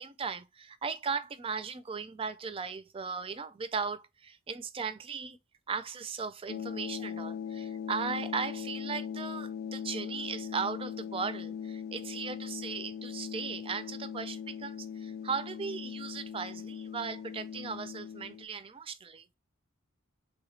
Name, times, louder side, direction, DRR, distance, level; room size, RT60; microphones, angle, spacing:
voice 1, 0.0-5.4 5.7-19.2, right 5 dB, 25° right, 0.4 m, -37 dB
sound 1, 6.5-18.5, left 7 dB, 50° left, 0.3 m, -40 dB
3.5 x 2.8 x 3.1 m
head